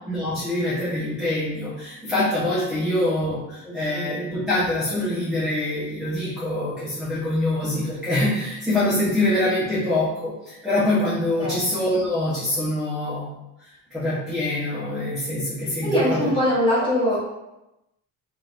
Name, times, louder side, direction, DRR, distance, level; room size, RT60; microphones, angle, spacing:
voice 1, 0.0-13.3 13.9-16.3, left 1 dB, ahead, -10 dB, 0.6 m, -24 dB
voice 2, 2.7-3.0 3.6-4.3 11.4-11.7 15.8-17.2, equal, 15° left, -7 dB, 1.1 m, -23 dB
3.3 x 2.7 x 2.4 m, 0.95 s
cardioid pair, 155°, 35 cm